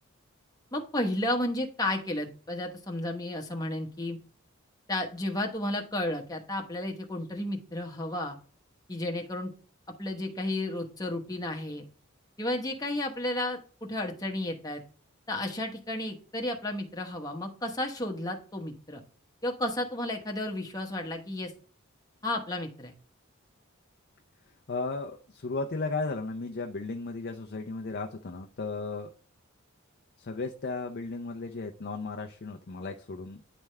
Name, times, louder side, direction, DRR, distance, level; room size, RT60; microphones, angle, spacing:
voice 1, 0.7-4.2 4.9-8.4 8.9-9.5 10.0-11.9 12.4-14.8 15.3-19.0 19.4-21.5 22.2-22.9, left 1 dB, 20° left, 2 dB, 1.0 m, -32 dB
voice 2, 24.7-29.1 30.2-33.4, left 3 dB, 50° left, 3 dB, 0.6 m, -35 dB
10.0 x 3.5 x 3.2 m, 0.40 s
head